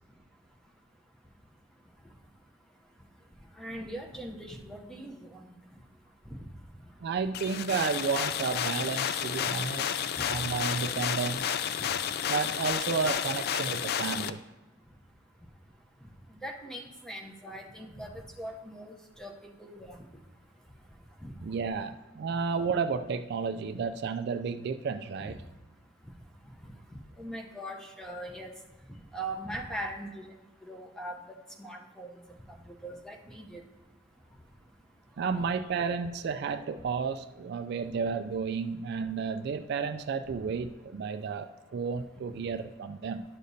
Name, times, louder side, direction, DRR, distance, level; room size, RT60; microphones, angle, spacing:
voice 1, 3.6-5.6 6.3-6.4 16.4-19.3 19.6-20.1 21.2-21.3 25.2-25.3 27.2-28.5 29.1-30.3 30.6-31.2 31.6-32.1 32.8-33.6, right 1 dB, 5° left, 1 dB, 0.7 m, -40 dB
voice 2, 7.0-9.9 10.3-11.6 12.3-14.4 21.4-25.3 35.2-41.5 41.7-43.2, right 5 dB, 55° right, 9 dB, 0.3 m, -32 dB
sound 1, 7.3-14.3, left 9 dB, 55° left, 0.3 m, -31 dB
11.0 x 6.5 x 2.7 m, 1.1 s
head